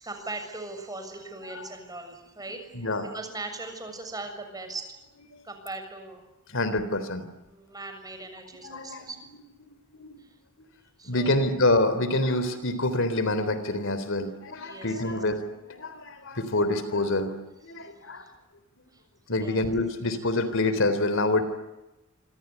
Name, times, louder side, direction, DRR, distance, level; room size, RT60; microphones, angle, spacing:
voice 1, 0.0-2.6 3.1-4.9 5.4-6.3 7.5-9.2 11.0-11.5 14.6-15.2 17.7-18.3 18.9-19.0 19.4-19.6, right 2 dB, 20° right, 6 dB, 7.0 m, -39 dB
voice 2, 2.7-3.1 5.3-5.4 6.5-7.3 8.6-9.4 10.0-10.2 11.0-18.2 19.3-21.4, left 2 dB, 65° left, 12 dB, 3.6 m, -27 dB
27.5 x 26.0 x 8.2 m, 0.99 s
head